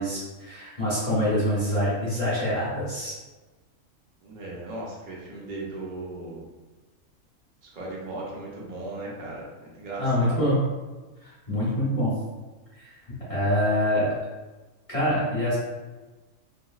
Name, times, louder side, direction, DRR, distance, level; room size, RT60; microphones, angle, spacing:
voice 1, 0.0-3.2 10.0-10.6 11.2-12.1 12.7-12.9 13.3-14.1 14.9-15.6, equal, 25° left, -9 dB, 1.0 m, -25 dB
voice 2, 4.2-6.4 7.6-10.4, right 2 dB, 50° right, -4 dB, 0.6 m, -37 dB
2.9 x 2.6 x 2.4 m, 1.2 s
omnidirectional pair, 1.5 m